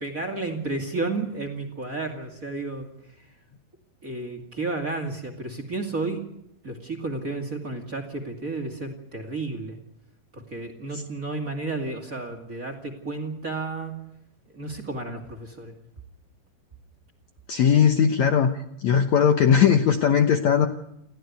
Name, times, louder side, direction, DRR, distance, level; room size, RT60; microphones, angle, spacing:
voice 1, 0.0-2.9 3.2-3.3 4.0-6.3 6.6-9.8 10.3-14.0 14.5-15.7, right 3 dB, 25° right, 7 dB, 2.2 m, -32 dB
voice 2, 17.5-18.5 18.8-20.7, left 7 dB, 65° left, 7 dB, 1.9 m, -19 dB
29.0 x 14.0 x 9.5 m, 0.84 s
omnidirectional pair, 4.3 m